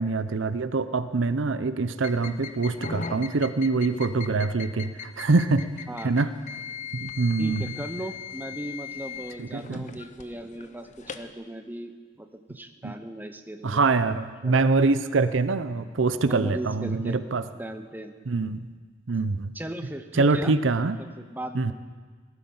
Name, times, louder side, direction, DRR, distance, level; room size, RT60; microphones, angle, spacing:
voice 1, 0.0-5.7 6.0-6.3 6.9-7.7 9.4-9.8 12.8-12.9 13.6-17.4 18.3-18.6 19.1-19.5 20.2-21.0 21.5-21.7, right 3 dB, 75° right, 12 dB, 0.6 m, -24 dB
sound 1, 2.0-11.3, left 6 dB, 40° left, 0.8 m, -40 dB
voice 2, 5.9-6.2 7.4-13.8 14.4-14.7 16.2-17.2 17.6-18.1 19.5-20.6 21.0-21.7, right 1 dB, 10° right, 7 dB, 0.8 m, -37 dB
18.5 x 12.0 x 5.5 m, 1.5 s
head